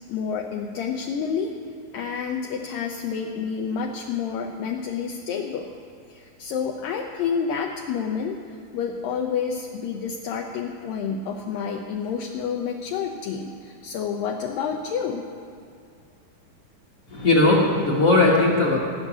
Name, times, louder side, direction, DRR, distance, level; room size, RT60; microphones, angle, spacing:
voice 1, 0.1-1.5 1.9-5.7 6.1-15.3, left 6 dB, 75° left, 1 dB, 2.3 m, -29 dB
voice 2, 17.1-18.8, left 2 dB, 50° left, -4 dB, 2.1 m, -18 dB
17.5 x 6.5 x 9.8 m, 2.4 s
omnidirectional pair, 4.4 m